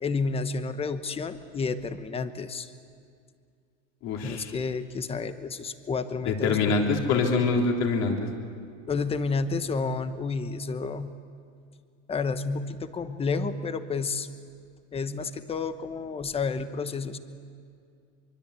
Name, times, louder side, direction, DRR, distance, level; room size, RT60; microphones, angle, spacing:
voice 1, 0.0-2.7 4.2-7.0 8.9-11.2 12.1-14.3 14.9-17.2, left 4 dB, 15° left, 11 dB, 1.1 m, -30 dB
voice 2, 4.0-4.5 6.3-8.2, left 4 dB, 45° left, 1 dB, 3.7 m, -25 dB
24.0 x 24.0 x 8.4 m, 2.3 s
supercardioid pair, 140°, 37 cm